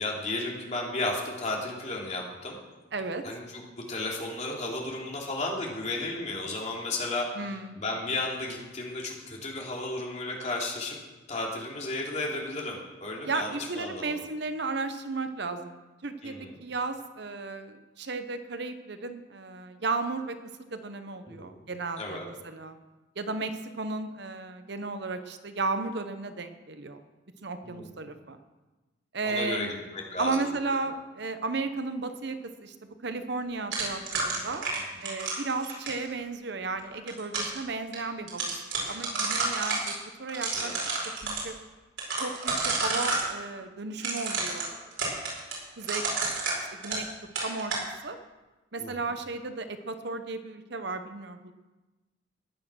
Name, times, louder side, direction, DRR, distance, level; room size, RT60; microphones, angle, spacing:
voice 1, 0.0-2.6 3.2-11.0 11.3-14.2 16.2-16.6 21.3-21.6 22.0-22.3 27.6-27.9 29.2-30.4 34.3-34.4 40.5-40.7 48.8-48.9, left 2 dB, 35° left, -1 dB, 3.0 m, -34 dB
voice 2, 2.9-3.3 7.3-7.8 13.2-22.8 23.2-27.0 27.4-28.4 29.1-29.7 30.2-34.6 35.0-39.9 40.2-40.8 41.2-41.5 42.2-44.7 45.8-46.0 46.7-47.1 47.4-48.2 48.7-51.5, right 3 dB, 60° right, 9 dB, 0.9 m, -34 dB
sound 1, 33.7-36.1 36.8-37.6 37.9-38.0 38.3-39.9 40.3-41.4 42.0-43.3 44.0-47.1 47.4-47.8, right 3 dB, 80° right, 4.9 m, -30 dB
15.0 x 10.5 x 6.2 m, 1.2 s
head